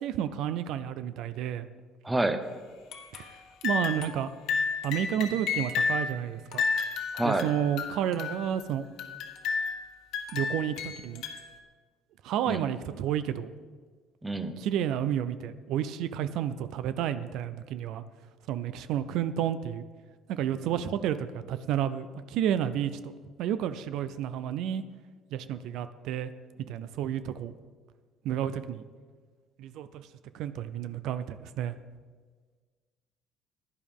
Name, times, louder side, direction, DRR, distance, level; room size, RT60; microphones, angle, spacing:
voice 1, 0.0-1.7 3.1-4.3 4.8-6.6 7.2-8.8 10.3-11.3 12.2-13.5 14.6-18.0 18.5-19.8 20.3-23.1 23.4-24.8 25.3-26.3 26.7-27.5 28.2-28.9 29.6-30.1 30.3-31.7, right 10 dB, 65° right, 12 dB, 0.5 m, -31 dB
voice 2, 2.0-2.4 7.1-7.5 12.5-12.6 14.2-14.6, right 2 dB, 10° right, 9 dB, 0.7 m, -27 dB
sound 1, 2.9-3.3 3.6-4.2 4.5-6.1 6.5-8.6 9.0-9.9 10.1-11.6, left 5 dB, 65° left, 1.3 m, -32 dB
16.0 x 11.0 x 3.6 m, 1.5 s
cardioid pair, 160°, 0 cm